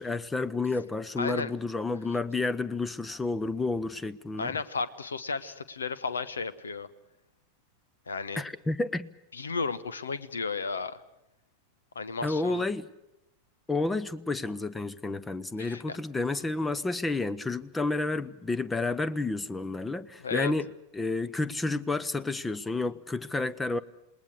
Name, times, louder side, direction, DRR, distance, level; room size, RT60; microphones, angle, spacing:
voice 1, 0.0-4.5 8.3-9.1 12.2-12.9 13.7-20.7 20.9-23.8, left 3 dB, 10° left, 0.8 m, -30 dB
voice 2, 1.2-1.5 4.4-6.9 8.1-8.4 9.3-11.0 11.9-12.6 15.6-16.0 20.2-20.5, left 4 dB, 70° left, 1.1 m, -33 dB
28.0 x 20.0 x 6.5 m
figure-of-eight pair, 90°, 0 cm